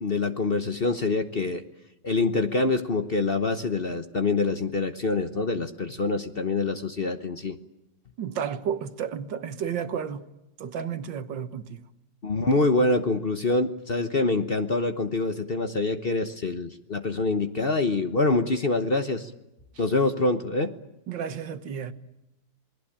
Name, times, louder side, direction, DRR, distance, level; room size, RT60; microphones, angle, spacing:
voice 1, 0.0-1.6 2.0-7.6 12.2-19.3 19.8-20.7, left 3 dB, 35° left, 1.1 m, -25 dB
voice 2, 8.2-10.2 10.6-11.8 21.1-21.9, right 8 dB, 80° right, 2.0 m, -32 dB
27.5 x 20.5 x 8.8 m
omnidirectional pair, 2.0 m